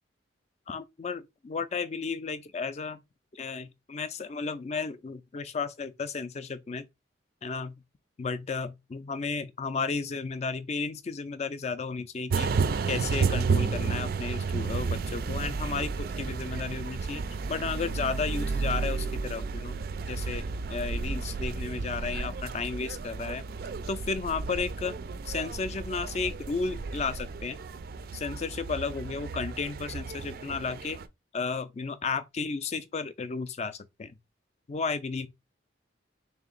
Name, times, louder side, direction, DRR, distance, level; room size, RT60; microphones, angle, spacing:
voice 1, 0.7-3.0 3.3-6.9 7.4-7.8 8.2-12.5 12.9-19.7 20.1-20.4 20.7-23.4 23.9-25.0 25.2-27.6 28.1-31.0 31.3-34.1 34.7-35.3, left 4 dB, 35° left, 0.3 m, -33 dB
sound 1, 12.3-31.1, right 4 dB, 50° right, 0.3 m, -32 dB
3.4 x 2.8 x 3.9 m
head